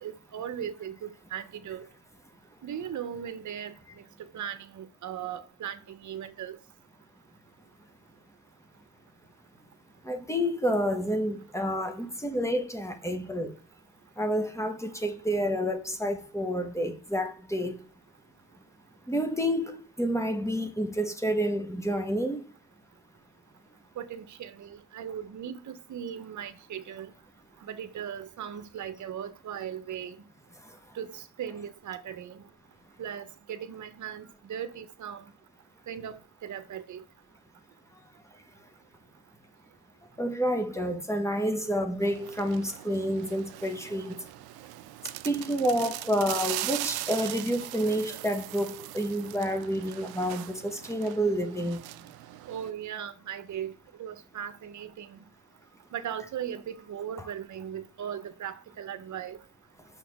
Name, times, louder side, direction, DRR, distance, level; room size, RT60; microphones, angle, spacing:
voice 1, 0.0-1.9 2.6-3.7 4.3-6.6 24.0-27.1 27.6-30.2 30.9-32.4 33.0-35.2 35.9-37.0 52.5-53.7 54.0-55.2 55.9-59.4, right 9 dB, 55° right, 0.9 m, -38 dB
voice 2, 10.0-13.5 14.2-17.8 19.1-22.4 40.2-44.1 45.2-51.8, equal, 10° left, 1.3 m, -29 dB
sound 1, 42.0-52.7, right 16 dB, 85° right, 0.5 m, -40 dB
5.9 x 5.5 x 3.5 m
cardioid pair, 90°, 36 cm